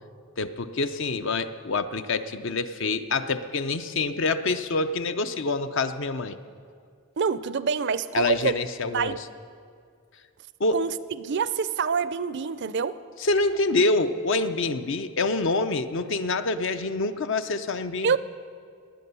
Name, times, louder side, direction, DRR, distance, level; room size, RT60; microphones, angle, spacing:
voice 1, 0.4-6.4 8.1-9.1 10.6-10.8 13.2-18.2, left 3 dB, 60° left, 10 dB, 0.7 m, -26 dB
voice 2, 7.2-8.5 8.9-9.2 10.7-13.0 18.0-18.2, right 5 dB, 55° right, 15 dB, 0.5 m, -26 dB
19.0 x 9.5 x 6.9 m, 2.2 s
head